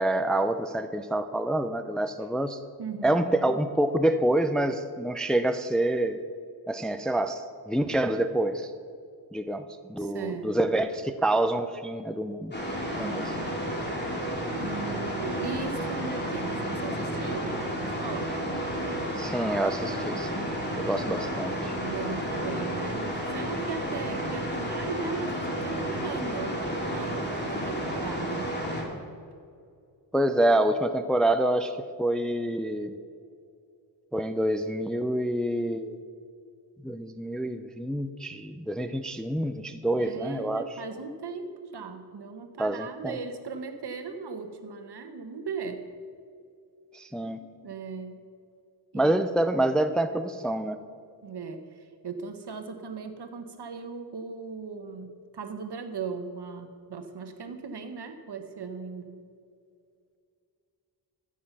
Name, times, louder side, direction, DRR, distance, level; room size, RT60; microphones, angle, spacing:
voice 1, 0.0-2.6 3.0-6.2 6.7-8.7 9.3-12.5 12.9-13.2 19.1-20.5 20.8-21.8 30.1-31.7 32.0-32.9 34.1-36.0 36.8-40.6 42.6-43.2 46.9-47.4 48.9-50.8, right 1 dB, ahead, 9 dB, 0.5 m, -27 dB
voice 2, 2.8-3.2 10.0-10.6 13.0-13.5 14.5-18.3 20.6-21.3 21.7-26.6 26.9-28.5 39.9-45.8 47.2-48.2 48.9-49.1 51.2-59.2, right 5 dB, 60° right, 7 dB, 1.3 m, -38 dB
sound 1, 12.5-28.8, equal, 25° left, 2.9 m, -31 dB
14.0 x 7.5 x 6.0 m, 2.3 s
cardioid pair, 70°, 44 cm